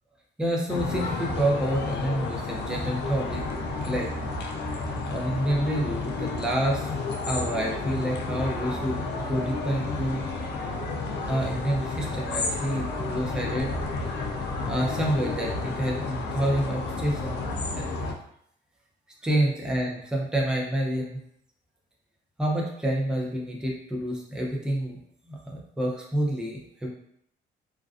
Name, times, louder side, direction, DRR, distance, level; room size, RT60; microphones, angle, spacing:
voice 1, 0.4-3.4 3.8-4.1 5.1-7.0 7.2-10.2 11.3-13.7 14.7-17.9 19.2-21.2 22.4-25.0 25.3-26.9, right 1 dB, 5° right, -1 dB, 0.5 m, -28 dB
sound 1, 0.7-18.1, left 3 dB, 60° left, 0.5 m, -31 dB
2.4 x 2.2 x 2.3 m, 0.71 s
cardioid pair, 90°, 20 cm